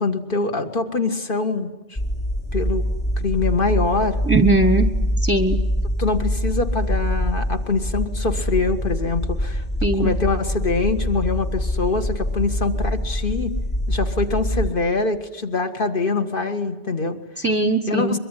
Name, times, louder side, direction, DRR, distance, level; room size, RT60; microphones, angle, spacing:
voice 1, 0.0-2.0 2.5-2.9 3.2-4.2 6.0-9.6 10.0-13.5 13.9-17.4 17.9-18.2, left 3 dB, 50° left, 6 dB, 2.0 m, -24 dB
sound 1, 2.0-14.7, equal, 35° left, 2.9 m, -24 dB
voice 2, 4.2-4.9 5.2-5.6 9.8-10.1 17.4-18.2, right 2 dB, 15° right, 8 dB, 1.0 m, -19 dB
23.5 x 23.5 x 10.0 m, 1.1 s
omnidirectional pair, 1.2 m